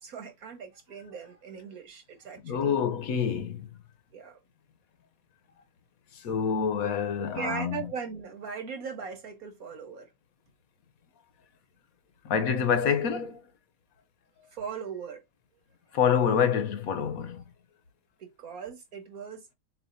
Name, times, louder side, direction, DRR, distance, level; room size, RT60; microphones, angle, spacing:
voice 1, 0.0-2.8 4.1-4.4 7.2-10.1 14.5-15.2 18.2-19.4, right 6 dB, 85° right, 1.9 m, -39 dB
voice 2, 2.4-3.7 6.1-7.9 12.2-13.4 15.9-17.4, left 7 dB, 85° left, 1.3 m, -27 dB
7.1 x 2.5 x 2.7 m
omnidirectional pair, 1.5 m